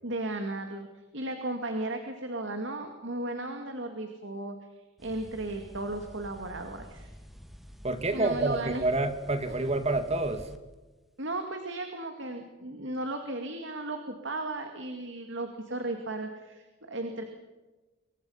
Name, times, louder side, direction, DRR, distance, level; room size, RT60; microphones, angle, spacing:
voice 1, 0.0-0.9 1.1-4.6 5.0-7.1 8.1-8.8 11.2-17.2, right 2 dB, 60° right, 5 dB, 2.2 m, -35 dB
sound 1, 5.0-10.6, equal, ahead, 1.7 m, -49 dB
voice 2, 7.8-10.5, right 2 dB, 30° right, 9 dB, 2.1 m, -28 dB
27.5 x 23.5 x 5.7 m, 1.2 s
head